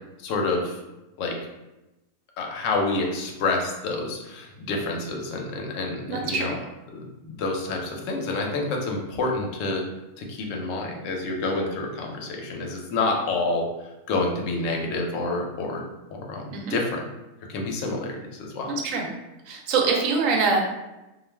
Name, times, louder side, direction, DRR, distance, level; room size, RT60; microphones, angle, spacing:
voice 1, 0.2-0.7 1.2-1.4 2.4-6.6 6.9-9.8 10.2-13.6 14.1-15.8 16.1-17.0 17.5-18.7, left 3 dB, 70° left, 1 dB, 0.8 m, -28 dB
voice 2, 6.1-6.5 16.5-16.8 18.7-19.1 19.5-20.6, right 4 dB, 70° right, 1 dB, 0.9 m, -24 dB
2.4 x 2.3 x 3.2 m, 1.0 s
omnidirectional pair, 1.5 m